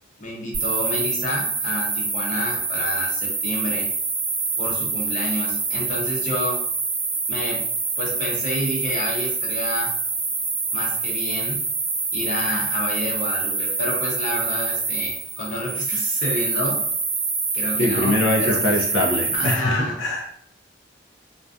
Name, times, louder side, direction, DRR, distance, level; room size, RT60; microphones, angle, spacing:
voice 1, 0.2-3.9 4.6-6.6 7.3-7.6 8.0-9.9 10.7-11.6 12.1-16.8 17.5-18.8 19.3-19.9, left 1 dB, 40° left, -2 dB, 0.6 m, -29 dB
sound 1, 0.5-19.5, right 4 dB, 80° right, 0.6 m, -26 dB
voice 2, 17.8-20.3, left 1 dB, 90° left, 1 dB, 0.5 m, -22 dB
2.5 x 2.2 x 2.3 m, 0.65 s
head